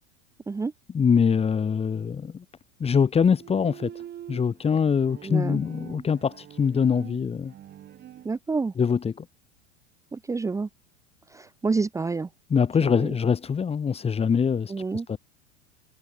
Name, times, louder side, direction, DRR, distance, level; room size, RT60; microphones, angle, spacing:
voice 1, 0.9-2.4 2.8-3.9 4.3-7.5 8.8-9.3 12.5-14.7 15.1-15.2, left 6 dB, 20° left, 1.8 m, -23 dB
Bowed string instrument, 3.3-8.3, right 11 dB, 30° right, 2.9 m, -44 dB
voice 2, 5.2-5.6 8.2-8.7 10.1-10.7 11.3-12.3 12.8-13.2 14.7-15.1, right 4 dB, 10° right, 1.0 m, -28 dB
figure-of-eight pair, 85°, 34 cm